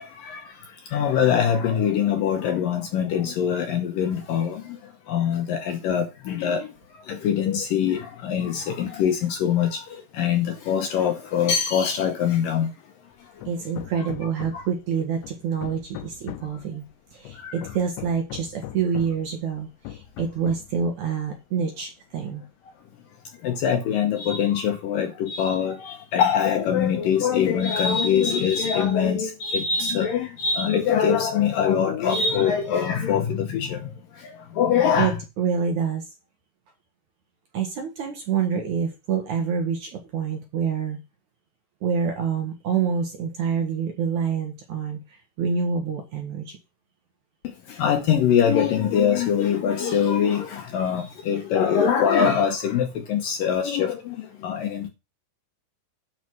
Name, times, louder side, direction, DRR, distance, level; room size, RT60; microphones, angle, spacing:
voice 1, 0.0-12.9 13.2-13.5 14.0-14.1 14.5-14.7 16.5-16.6 17.3-17.7 23.3-35.2 47.4-54.9, left 8 dB, 70° left, 2.2 m, -23 dB
Hammer, 13.4-14.8 15.2-16.6 17.3-19.3 19.9-20.8, left 13 dB, 90° left, 3.0 m, -39 dB
voice 2, 13.5-22.4 35.0-36.1 37.5-41.0 41.8-46.6, right 6 dB, 60° right, 2.3 m, -27 dB
11.0 x 5.5 x 6.1 m
omnidirectional pair, 5.0 m